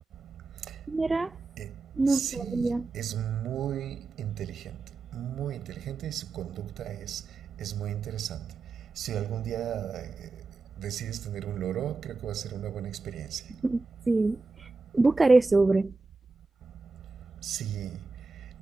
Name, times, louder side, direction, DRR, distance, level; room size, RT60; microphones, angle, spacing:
voice 1, 0.9-1.3 2.0-2.8 13.6-13.8 14.1-14.7 14.9-15.9, right 3 dB, 15° right, 0.5 m, -23 dB
voice 2, 2.1-2.6 2.9-4.5 5.1-6.5 6.8-7.2 7.6-8.3 9.0-10.1 10.8-13.4 17.4-18.0, right 11 dB, 65° right, 7.7 m, -34 dB
cardioid pair, 165°, 0 cm